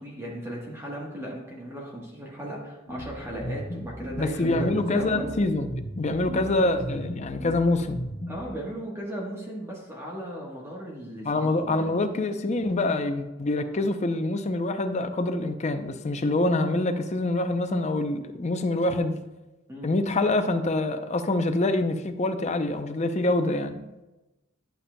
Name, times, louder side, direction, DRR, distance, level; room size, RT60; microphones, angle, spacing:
voice 1, 0.0-5.3 6.3-7.1 8.3-12.0 19.7-19.9, right 1 dB, 15° right, -3 dB, 1.2 m, -37 dB
sound 1, 2.9-8.5, equal, 80° left, 1.6 m, -36 dB
voice 2, 4.2-5.7 6.0-8.0 11.2-19.1 19.8-23.8, left 2 dB, 35° left, 8 dB, 0.5 m, -25 dB
11.5 x 6.8 x 2.2 m, 1.0 s
head